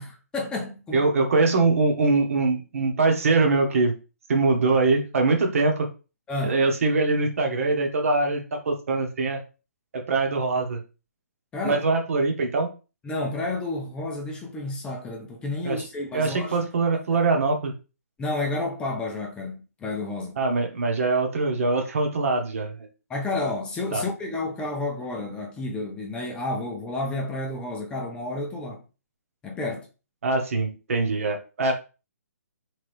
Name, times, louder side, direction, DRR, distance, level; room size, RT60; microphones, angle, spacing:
voice 1, 0.0-1.1 6.3-6.6 11.5-11.8 13.0-16.6 18.2-20.4 23.1-28.8 29.4-29.9, left 2 dB, 10° left, 0.6 m, -30 dB
voice 2, 0.9-3.9 4.3-5.9 6.4-9.4 10.1-10.8 11.6-12.7 15.6-15.8 16.1-17.7 20.4-22.9 23.9-24.0 30.2-31.7, right 3 dB, 60° right, 1.2 m, -23 dB
3.6 x 3.2 x 3.4 m
hypercardioid pair, 145°, 9 cm